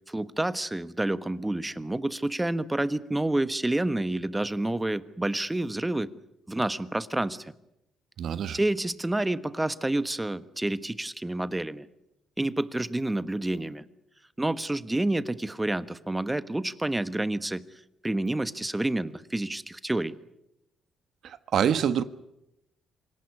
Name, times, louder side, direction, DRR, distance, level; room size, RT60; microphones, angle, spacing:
voice 1, 0.1-6.1 6.5-7.5 8.5-11.9 12.4-13.8 14.4-17.6 18.0-20.2, right 1 dB, 10° right, 1.3 m, -29 dB
voice 2, 8.2-8.6 21.2-22.0, right 8 dB, 65° right, 1.2 m, -26 dB
26.5 x 18.0 x 9.8 m
cardioid pair, 90°, 0 cm